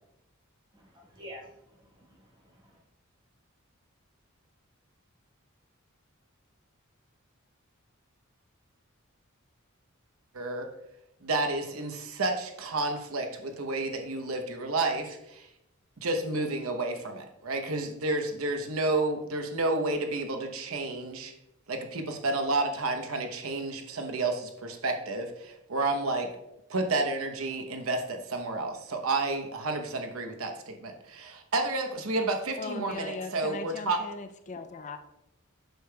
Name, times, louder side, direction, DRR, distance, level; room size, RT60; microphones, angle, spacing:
voice 1, 0.7-2.8, equal, 20° right, -1 dB, 1.3 m, -49 dB
voice 2, 10.3-10.7 11.2-15.5 16.0-21.3 21.7-26.3 26.7-34.0, right 2 dB, 80° right, 5 dB, 0.9 m, -31 dB
voice 3, 32.6-35.0, left 3 dB, 35° left, 8 dB, 0.4 m, -39 dB
7.9 x 6.5 x 2.3 m, 0.84 s
head